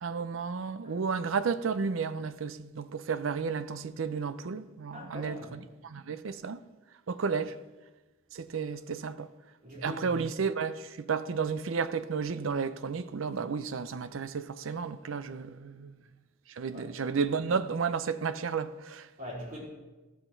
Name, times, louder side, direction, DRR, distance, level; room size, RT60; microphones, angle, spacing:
voice 1, 0.0-6.6 7.1-7.6 8.3-9.3 9.8-15.9 16.5-19.1, right 5 dB, 80° right, 0.5 m, -32 dB
voice 2, 4.9-5.6 9.6-10.2 16.7-16.8 19.2-19.6, left 1 dB, 45° right, 4.1 m, -42 dB
14.5 x 5.9 x 4.5 m
head